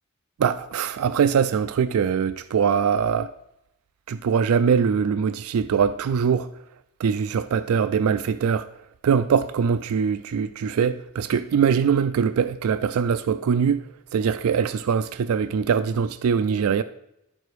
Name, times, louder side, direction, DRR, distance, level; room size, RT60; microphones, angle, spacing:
voice 1, 0.4-3.3 4.1-6.5 7.0-8.7 9.0-13.8 14.1-16.8, right 6 dB, 85° right, 0.4 m, -22 dB
11.0 x 5.0 x 4.6 m
head